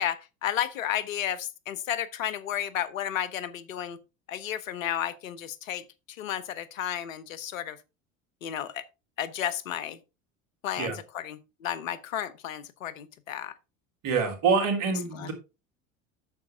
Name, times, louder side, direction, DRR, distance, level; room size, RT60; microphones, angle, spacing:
voice 1, 0.0-4.0 4.3-5.8 6.2-7.8 8.4-8.8 9.2-10.0 10.6-13.5 15.1-15.3, left 10 dB, 75° left, 1.0 m, -32 dB
voice 2, 14.0-15.3, right 5 dB, 55° right, 3.5 m, -26 dB
9.5 x 7.1 x 3.5 m
hypercardioid pair, 75°, 40 cm